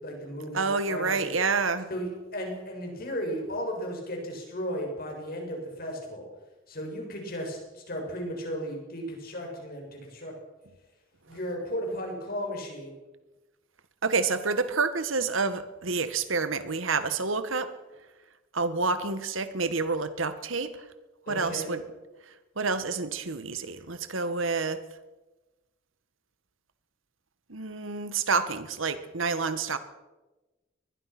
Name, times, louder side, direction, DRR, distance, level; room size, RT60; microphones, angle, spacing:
voice 1, 0.0-1.4 1.9-6.3 6.7-10.3 11.3-12.9 21.3-21.7, equal, 50° left, 2 dB, 7.1 m, -35 dB
voice 2, 0.5-1.9 14.0-17.7 18.5-20.7 21.3-21.8 22.6-24.8 27.5-29.8, right 4 dB, 80° right, 12 dB, 1.7 m, -28 dB
23.5 x 20.5 x 6.1 m, 1.1 s
head